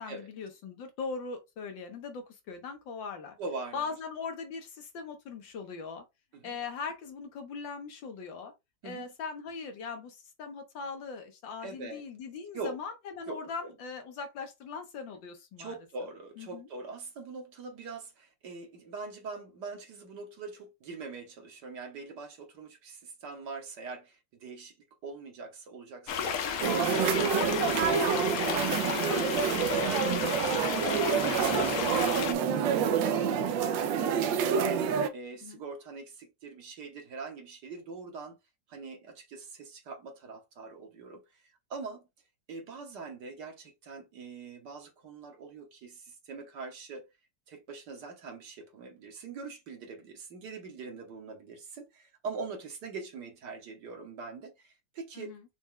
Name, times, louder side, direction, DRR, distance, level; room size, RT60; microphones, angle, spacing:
voice 1, 0.0-3.4 3.7-6.0 6.4-8.5 8.8-15.8 16.4-16.7 35.4-35.6 55.2-55.4, left 5 dB, 80° left, 1.9 m, -40 dB
voice 2, 3.4-3.9 6.3-6.6 8.8-9.1 11.6-12.0 12.5-12.8 13.3-13.8 15.6-24.8 25.0-33.3 33.6-34.7 35.1-38.4 38.7-41.4 41.7-42.1 42.5-47.1 47.5-55.3, right 4 dB, 65° right, 1.7 m, -43 dB
sound 1, 26.1-32.3, left 7 dB, 60° left, 1.0 m, -33 dB
sound 2, 26.6-35.1, right 7 dB, 85° right, 1.4 m, -27 dB
5.9 x 2.4 x 3.7 m
omnidirectional pair, 2.0 m